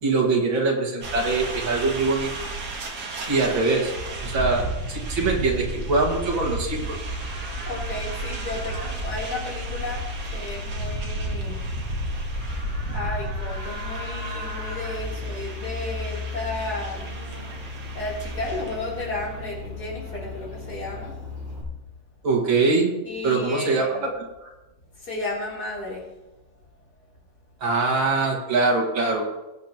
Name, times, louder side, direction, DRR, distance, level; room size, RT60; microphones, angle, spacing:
voice 1, 0.0-2.3 3.3-3.9 4.2-7.0 22.2-22.9 23.2-24.5 27.6-29.3, right 3 dB, 80° right, -1 dB, 2.8 m, -23 dB
sound 1, 1.0-19.4, right 2 dB, 55° right, 2.0 m, -33 dB
Livestock farm animals working animals, 6.7-21.6, left 3 dB, 25° right, 4.1 m, -36 dB
voice 2, 7.7-11.6 12.7-21.2 23.0-24.1 25.0-26.1, left 2 dB, 55° left, -5 dB, 4.0 m, -33 dB
20.5 x 8.5 x 3.0 m, 1.0 s
omnidirectional pair, 2.1 m